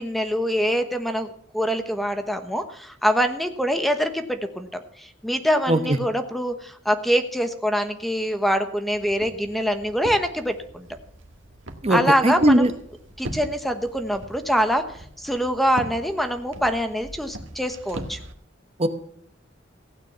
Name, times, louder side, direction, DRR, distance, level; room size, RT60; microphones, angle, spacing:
voice 1, 0.0-4.7 5.0-10.9 11.9-12.7 13.2-14.8 15.2-18.2, equal, ahead, 7 dB, 1.1 m, -24 dB
Walk footsteps, 8.9-18.3, right 1 dB, 85° right, 1.7 m, -40 dB
voice 2, 11.8-12.7 18.8-18.9, right 1 dB, 35° right, 9 dB, 1.0 m, -19 dB
16.0 x 9.3 x 5.7 m, 0.65 s
head